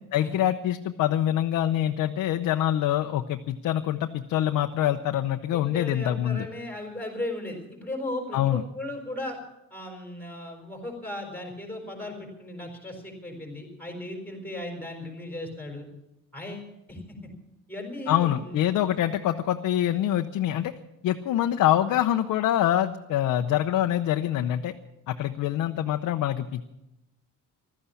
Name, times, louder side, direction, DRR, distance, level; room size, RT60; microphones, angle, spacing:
voice 1, 0.1-6.5 8.3-8.6 18.1-20.7 21.0-24.7 25.1-26.7, left 12 dB, 60° left, 6 dB, 0.7 m, -25 dB
voice 2, 5.5-9.4 9.7-15.9 16.3-17.3 17.7-18.9, left 1 dB, 5° left, 2 dB, 4.4 m, -37 dB
15.5 x 13.0 x 7.1 m, 0.90 s
cardioid pair, 160°, 34 cm